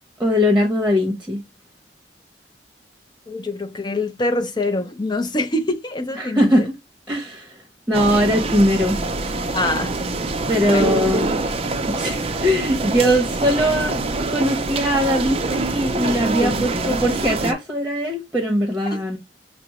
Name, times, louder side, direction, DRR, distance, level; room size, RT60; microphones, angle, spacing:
voice 1, 0.2-1.4 6.1-6.7 7.1-7.5 7.9-9.0 10.5-11.3 11.9-14.0 14.3-19.2, equal, 5° right, 0.9 m, -20 dB
voice 2, 3.3-6.7 9.5-9.9 10.6-10.9 16.4-16.5, left 2 dB, 25° left, 0.5 m, -24 dB
sound 1, 7.9-17.5, right 3 dB, 35° right, 0.4 m, -25 dB
5.8 x 2.0 x 2.9 m
head